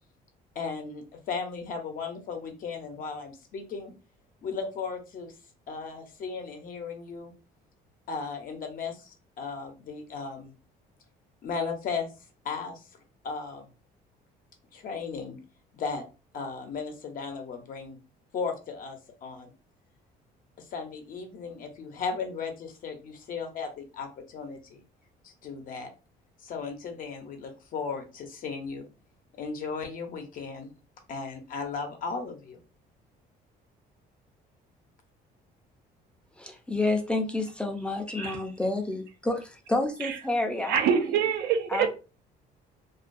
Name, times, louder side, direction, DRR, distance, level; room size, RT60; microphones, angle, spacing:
voice 1, 0.5-3.9 4.4-5.3 5.7-7.3 8.1-10.5 11.4-12.1 12.4-12.8 13.2-13.7 14.7-15.4 15.7-16.0 16.3-18.0 18.3-19.5 20.6-24.8 25.2-25.9 26.4-28.9 29.4-30.7 31.1-32.6, left 5 dB, 55° left, 4 dB, 0.7 m, -36 dB
voice 2, 36.4-41.2 41.7-41.9, left 2 dB, 5° left, 3 dB, 0.5 m, -29 dB
voice 3, 40.7-41.9, right 7 dB, 75° right, 7 dB, 0.5 m, -25 dB
2.4 x 2.2 x 2.5 m, 0.32 s
cardioid pair, 110°, 17 cm